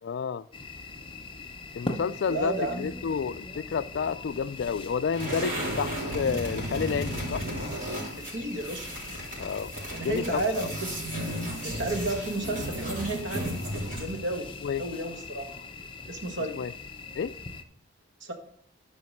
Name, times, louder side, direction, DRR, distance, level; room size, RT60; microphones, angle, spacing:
voice 1, 0.0-0.5 1.7-7.5 9.4-9.7 10.0-10.4 14.6-14.9 16.4-16.7 17.1-17.3, left 6 dB, 55° left, 0.3 m, -30 dB
sound 1, 0.5-17.6, left 3 dB, 25° left, 0.6 m, -41 dB
voice 2, 2.3-2.9 8.3-8.9 9.9-11.0 11.6-13.5 14.0-14.5 14.8-15.5 16.1-16.6 18.2-18.3, right 1 dB, 65° right, 1.6 m, -32 dB
sound 2, 5.1-14.2, right 1 dB, 40° right, 3.6 m, -34 dB
13.0 x 5.1 x 6.3 m
head